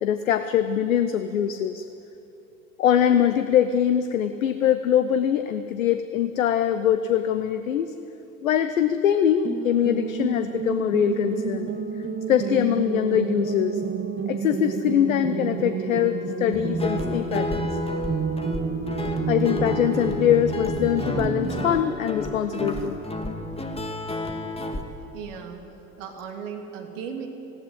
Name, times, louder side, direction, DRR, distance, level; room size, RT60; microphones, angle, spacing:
voice 1, 0.0-1.9 2.8-7.9 8.4-11.7 12.3-13.8 14.3-17.8 19.0-23.0, left 10 dB, 80° left, 10 dB, 0.8 m, -23 dB
sound 1, 9.4-21.7, right 5 dB, 30° right, 2.0 m, -30 dB
Guitar, 16.5-24.8, left 1 dB, 15° left, 2.5 m, -31 dB
voice 2, 25.1-25.7 26.0-27.3, right 7 dB, 70° right, 3 dB, 2.7 m, -36 dB
19.0 x 16.5 x 9.5 m, 2.8 s
figure-of-eight pair, 60°, 40 cm